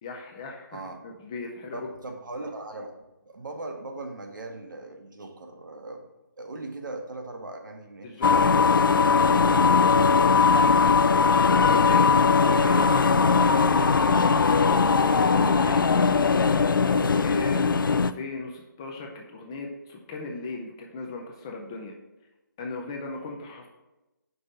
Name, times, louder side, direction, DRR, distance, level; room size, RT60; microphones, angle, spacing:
voice 1, 0.0-1.9 8.0-8.6 9.2-12.1 12.4-13.9 14.8-16.7 17.2-21.9 22.6-23.7, left 3 dB, 15° left, 1 dB, 0.4 m, -38 dB
voice 2, 1.7-2.9 3.2-6.1 6.4-9.5 10.1-10.5 11.1-13.0 13.3-13.4 13.8-14.2 16.9-17.1, right 2 dB, 70° right, 4 dB, 1.1 m, -40 dB
Hoist machinery on Montmartre funicular Pars France, 8.2-18.1, left 5 dB, 80° left, 0.4 m, -20 dB
5.2 x 4.1 x 5.0 m, 1.0 s
figure-of-eight pair, 160°, 11 cm